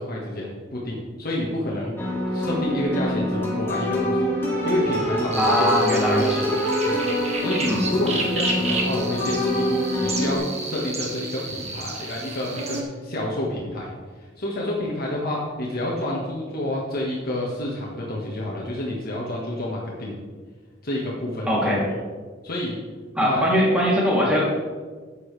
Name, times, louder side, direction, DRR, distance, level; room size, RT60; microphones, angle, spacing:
voice 1, 0.0-1.9 2.3-4.3 4.6-5.8 6.8-13.9 14.2-20.1 20.8-21.7 22.4-22.8 23.2-23.4, left 1 dB, 50° left, -3 dB, 1.5 m, -29 dB
sound 1, 2.0-10.4, equal, 15° left, 2.3 m, -25 dB
sound 2, 5.3-12.8, right 2 dB, 35° right, 1.6 m, -31 dB
voice 2, 5.4-6.5 7.6-7.8 21.5-21.9 23.2-24.6, equal, 5° right, -5 dB, 3.0 m, -21 dB
12.5 x 8.6 x 3.3 m, 1.5 s
head